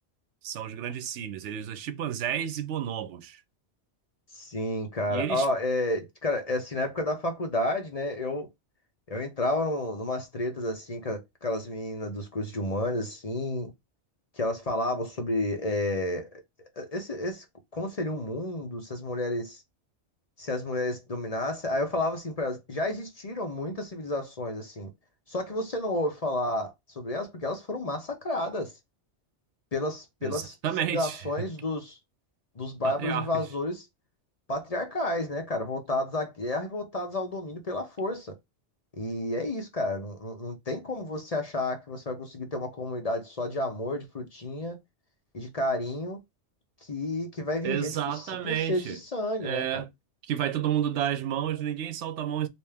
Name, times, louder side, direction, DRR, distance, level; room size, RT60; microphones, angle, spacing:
voice 1, 0.4-3.4 5.1-5.5 30.2-31.2 32.8-33.4 47.6-49.0 49.4-49.9 50.2-52.5, right 10 dB, 80° right, 0.9 m, -31 dB
voice 2, 4.3-8.5 9.1-13.7 14.3-16.4 16.8-17.4 17.7-19.6 20.4-24.9 25.3-28.7 29.7-30.6 30.9-32.0 32.6-33.8 34.5-38.3 39.0-44.8 45.3-46.2 46.8-49.8, left 1 dB, 35° left, 0.8 m, -31 dB
3.3 x 2.8 x 3.3 m
omnidirectional pair, 1.2 m